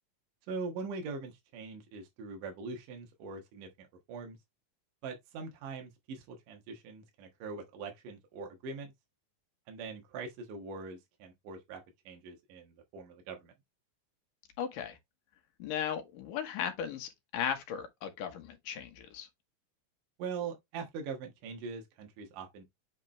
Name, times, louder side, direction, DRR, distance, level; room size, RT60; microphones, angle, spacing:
voice 1, 0.5-4.4 5.0-8.9 9.7-13.5 20.2-22.6, right 4 dB, 75° right, 2.9 m, -42 dB
voice 2, 14.6-15.0 15.6-19.3, left 8 dB, 80° left, 2.9 m, -36 dB
8.1 x 4.3 x 3.1 m
omnidirectional pair, 3.8 m